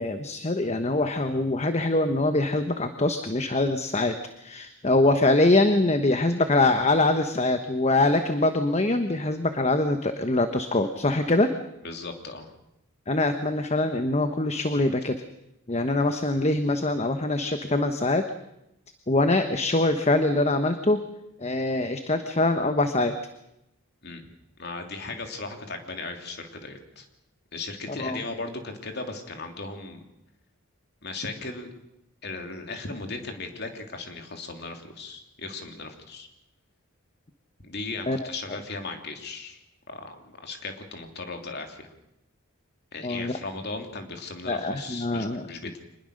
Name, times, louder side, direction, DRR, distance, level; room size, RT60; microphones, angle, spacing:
voice 1, 0.0-11.5 13.1-15.2 15.7-18.3 19.1-21.0 21.4-23.2 27.9-28.2 38.1-38.3 43.0-43.4 44.5-45.5, left 2 dB, 30° left, 8 dB, 1.1 m, -24 dB
voice 2, 11.8-12.5 24.0-24.2 24.6-27.1 27.5-30.0 31.0-31.7 32.2-36.3 37.6-39.6 39.9-41.9 42.9-45.8, left 3 dB, 50° left, 5 dB, 3.1 m, -37 dB
25.5 x 20.5 x 6.6 m, 0.87 s
head